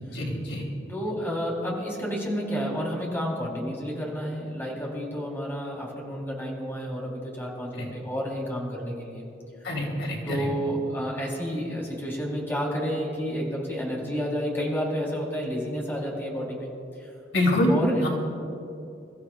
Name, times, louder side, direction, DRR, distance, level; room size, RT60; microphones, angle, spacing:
voice 1, 0.1-0.6 7.8-7.9 9.6-10.5 17.3-17.7 18.0-18.1, left 1 dB, 85° left, -2 dB, 3.1 m, -25 dB
voice 2, 0.9-9.2 10.2-16.7 17.0-17.1 17.7-18.1, equal, 15° left, -3 dB, 3.5 m, -30 dB
28.5 x 14.5 x 2.4 m, 2.6 s
head